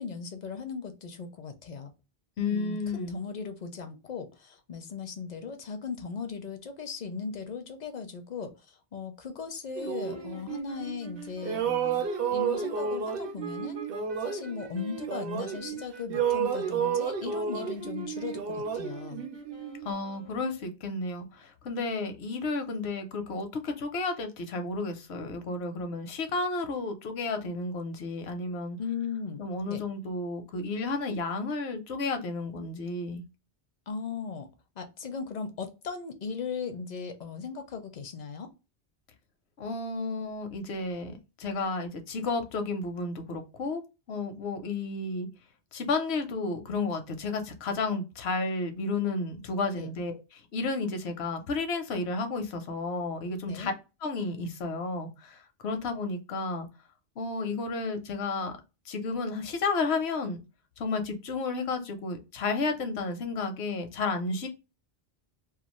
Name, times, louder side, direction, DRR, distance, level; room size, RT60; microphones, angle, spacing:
voice 1, 0.0-1.9 2.5-12.0 12.3-13.8 14.2-19.3 28.8-29.4 29.7-29.8 33.9-34.5 34.8-38.5 49.7-49.9 53.5-53.7, left 5 dB, 55° left, 0.5 m, -38 dB
voice 2, 2.4-3.2 19.8-28.8 29.4-33.2 39.6-43.8 44.1-45.3 45.7-53.7 54.0-56.7 57.2-58.5 58.9-60.4 60.8-64.5, left 3 dB, 80° left, 0.9 m, -32 dB
sound 1, 9.8-11.1 11.4-15.8 16.1-19.9, right 7 dB, 65° right, 0.7 m, -32 dB
sound 2, 10.0-20.7, equal, 35° right, 0.5 m, -45 dB
2.4 x 2.3 x 2.9 m
omnidirectional pair, 1.1 m